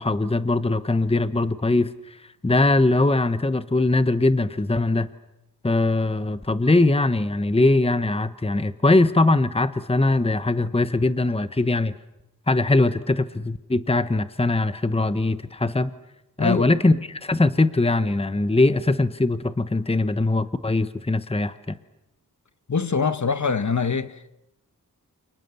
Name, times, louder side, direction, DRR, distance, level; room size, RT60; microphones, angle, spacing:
voice 1, 0.0-5.1 5.6-11.9 12.5-15.9 16.4-21.8, left 2 dB, 15° left, 1.0 m, -21 dB
voice 2, 16.4-16.8 22.7-24.3, left 5 dB, 50° left, 1.2 m, -24 dB
29.0 x 28.0 x 7.0 m
wide cardioid pair, 95°, 36 cm